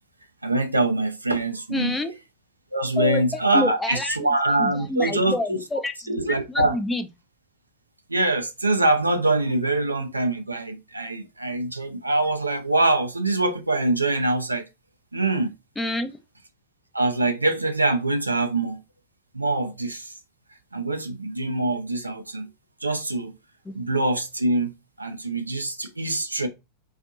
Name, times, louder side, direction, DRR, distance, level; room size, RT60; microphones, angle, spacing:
voice 1, 0.4-2.0 2.7-5.6 6.1-6.8 8.1-14.7 15.1-15.5 16.9-18.8 19.3-20.1 20.7-22.5 22.8-23.3 23.7-24.7 25.0-26.5, right 2 dB, 85° right, 0.4 m, -24 dB
voice 2, 1.7-2.1 3.0-3.2 3.5-6.2 6.5-7.1 15.8-16.2, left 2 dB, 10° left, 0.4 m, -28 dB
2.5 x 2.4 x 2.5 m
figure-of-eight pair, 90°, 0 cm